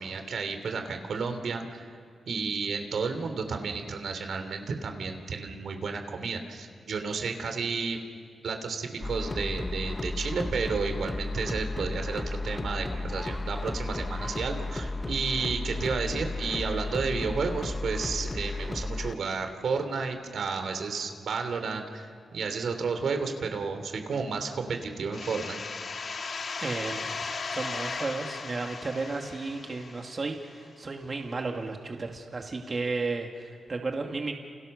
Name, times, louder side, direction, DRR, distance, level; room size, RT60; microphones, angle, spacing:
voice 1, 0.0-1.9 2.3-8.0 8.4-22.1 22.3-25.6, right 5 dB, 75° right, 6 dB, 3.3 m, -32 dB
sound 1, 9.0-19.2, left 2 dB, 25° left, 1.1 m, -33 dB
sound 2, 25.1-30.6, left 4 dB, 60° left, 2.2 m, -37 dB
voice 2, 26.6-27.2 27.5-34.3, right 3 dB, 45° right, 2 dB, 2.6 m, -33 dB
29.5 x 28.5 x 6.8 m, 2.1 s
cardioid pair, 60°, 0 cm